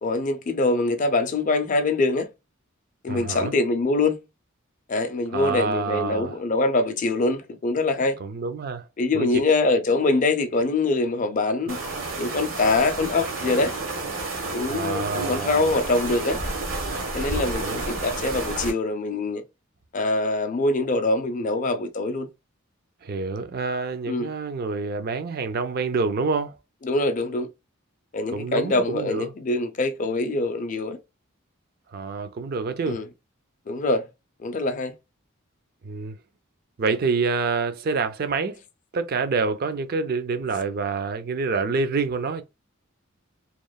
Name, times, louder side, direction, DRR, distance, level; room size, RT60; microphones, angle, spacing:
voice 1, 0.0-2.3 3.0-4.2 4.9-8.2 9.0-11.8 12.2-13.7 14.4-16.4 17.1-19.4 19.9-22.3 24.1-24.3 26.8-27.5 28.1-31.0 32.9-33.1 33.7-34.0 34.4-34.9, left 2 dB, 40° left, 0.4 m, -24 dB
voice 2, 3.1-3.5 5.3-6.4 8.2-8.9 9.1-9.3 14.7-15.7 17.3-17.8 23.0-26.6 28.3-29.3 31.9-33.0 35.8-36.2 36.8-38.6 38.9-42.4, right 4 dB, 50° right, 0.4 m, -27 dB
sound 1, 11.7-18.7, right 3 dB, 80° right, 1.0 m, -30 dB
2.9 x 2.0 x 2.3 m
head